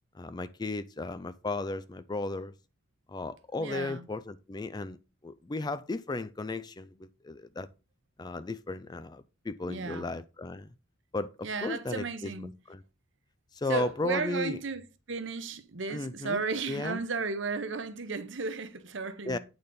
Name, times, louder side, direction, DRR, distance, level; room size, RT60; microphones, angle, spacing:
voice 1, 0.1-2.5 3.1-5.0 5.2-7.7 8.2-10.7 11.1-12.8 13.5-14.6 15.9-17.0 19.2-19.4, left 2 dB, 20° left, 0.3 m, -35 dB
voice 2, 3.6-4.1 9.7-10.1 11.4-12.5 13.7-19.4, right 4 dB, 60° right, 0.9 m, -34 dB
8.8 x 4.0 x 5.2 m
head